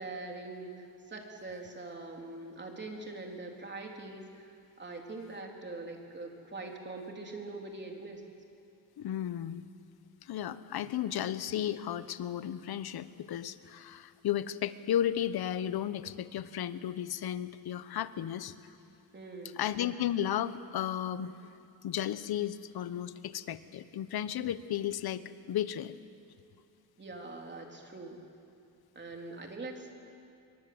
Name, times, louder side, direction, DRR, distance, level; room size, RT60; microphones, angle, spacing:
voice 1, 0.0-8.2 19.1-19.6 27.0-28.2 29.0-29.9, right 2 dB, 30° right, 1 dB, 3.8 m, -43 dB
voice 2, 9.0-9.7 10.2-18.5 19.6-21.4 21.8-26.0, left 10 dB, 75° left, 13 dB, 1.1 m, -34 dB
26.5 x 23.5 x 7.9 m, 2.6 s
cardioid pair, 130°, 38 cm